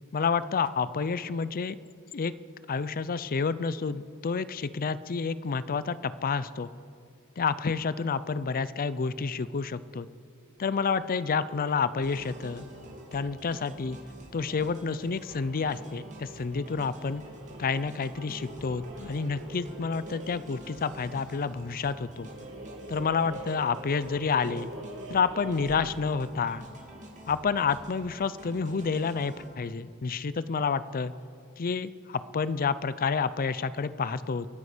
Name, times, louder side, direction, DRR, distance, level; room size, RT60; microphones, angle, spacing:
voice 1, 0.1-1.8 2.1-2.3 2.7-6.7 7.4-10.1 10.6-12.7 13.1-14.0 14.3-17.2 17.6-22.3 22.9-24.7 25.1-26.7 27.3-31.1 31.6-34.5, left 5 dB, 40° left, 15 dB, 0.5 m, -29 dB
sound 1, 10.6-26.3, right 1 dB, 65° right, 1.7 m, -46 dB
sound 2, 12.0-29.5, equal, 35° right, 2.4 m, -48 dB
26.5 x 9.6 x 5.0 m, 2.2 s
head